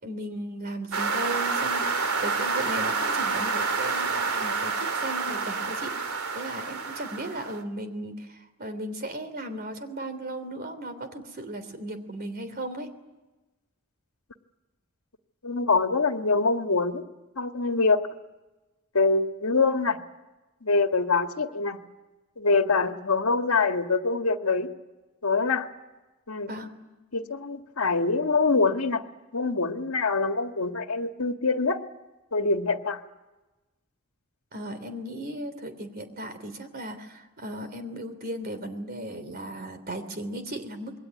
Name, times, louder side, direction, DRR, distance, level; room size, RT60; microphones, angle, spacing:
voice 1, 0.0-6.0 6.3-12.9 26.5-26.7 34.5-41.0, right 1 dB, 45° right, 10 dB, 3.2 m, -36 dB
sound 1, 0.9-7.6, right 4 dB, 85° right, 2.6 m, -28 dB
voice 2, 15.4-17.0 17.3-18.1 18.9-20.0 20.6-21.8 22.4-24.7 25.2-25.7 26.3-26.5 27.1-29.0 29.3-31.8 32.3-33.0, left 4 dB, 75° left, 6 dB, 1.8 m, -24 dB
27.0 x 21.5 x 9.7 m, 1.1 s
head